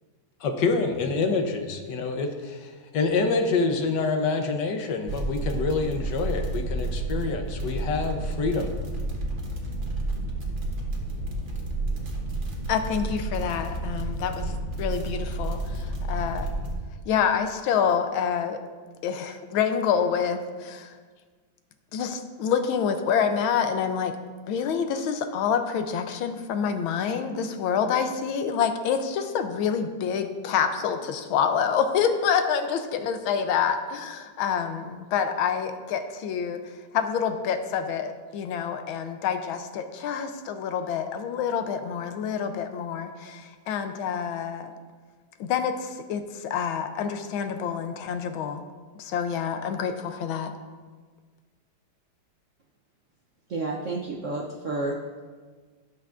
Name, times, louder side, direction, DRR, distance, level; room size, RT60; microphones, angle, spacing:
voice 1, 0.4-8.8, left 4 dB, 65° left, 5 dB, 1.3 m, -27 dB
sound 1, 5.1-16.7, right 2 dB, 30° right, 1.1 m, -31 dB
voice 2, 12.7-16.5 17.1-18.6 19.0-20.9 21.9-24.2 24.5-36.6 36.9-44.7 45.4-48.6 49.0-50.5, left 7 dB, 85° left, 8 dB, 1.5 m, -27 dB
voice 3, 53.5-55.0, right 2 dB, 65° right, -1 dB, 0.7 m, -30 dB
17.0 x 5.9 x 2.5 m, 1.5 s
omnidirectional pair, 2.2 m